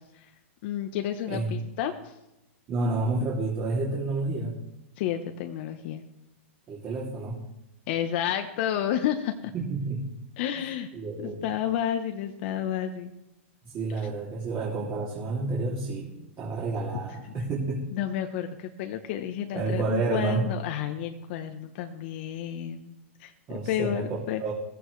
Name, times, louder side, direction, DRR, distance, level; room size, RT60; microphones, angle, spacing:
voice 1, 0.6-2.1 5.0-6.0 7.9-9.5 10.4-10.9 11.2-13.1 16.9-17.0 17.3-17.4 17.9-24.4, left 10 dB, 55° left, 6 dB, 1.2 m, -31 dB
voice 2, 2.7-4.6 6.7-7.4 9.5-10.1 10.9-11.5 13.6-17.8 19.5-20.5 23.5-24.5, right 3 dB, 30° right, -3 dB, 3.0 m, -30 dB
15.5 x 15.0 x 3.3 m, 0.91 s
hypercardioid pair, 135°, 7 cm